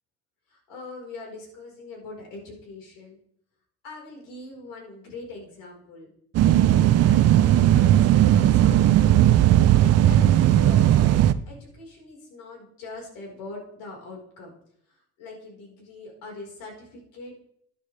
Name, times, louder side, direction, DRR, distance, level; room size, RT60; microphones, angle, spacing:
voice 1, 0.5-3.2 3.8-6.1 6.4-9.5 9.8-14.5 15.2-17.3, left 2 dB, 70° left, -1 dB, 4.4 m, -42 dB
sound 1, 6.3-11.3, right 12 dB, 45° right, 0.6 m, -17 dB
12.0 x 10.0 x 3.3 m, 0.70 s
cardioid pair, 110°, 35 cm